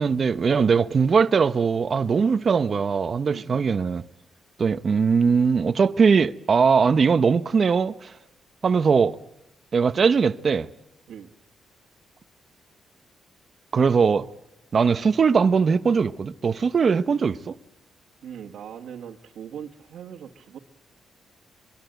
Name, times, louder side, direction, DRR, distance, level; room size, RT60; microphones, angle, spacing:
voice 1, 0.0-4.0 4.6-8.1 8.6-9.2 9.7-10.7 13.7-14.3 14.7-17.6, right 5 dB, 35° right, 0.8 m, -20 dB
voice 2, 3.3-3.7 11.1-11.3 18.2-20.6, right 8 dB, 70° right, 1.6 m, -40 dB
24.0 x 24.0 x 8.0 m
wide cardioid pair, 165°, 0 cm